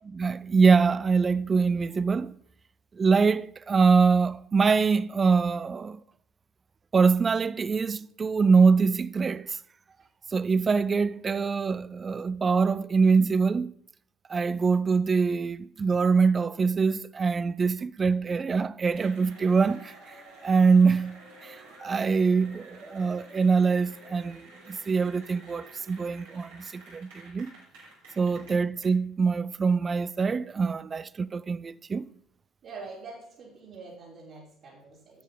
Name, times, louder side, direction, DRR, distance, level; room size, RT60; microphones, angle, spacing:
voice 1, 0.1-2.3 3.0-6.0 6.9-9.6 10.3-13.7 14.3-19.9 20.4-27.5 28.2-32.1, right 5 dB, 35° right, 0.3 m, -24 dB
Cheering / Applause, 18.9-28.9, right 1 dB, 75° right, 3.6 m, -50 dB
voice 2, 28.3-28.6 32.6-35.2, right 4 dB, 60° right, 3.8 m, -45 dB
10.5 x 8.1 x 3.8 m
hypercardioid pair, 55°, 0 cm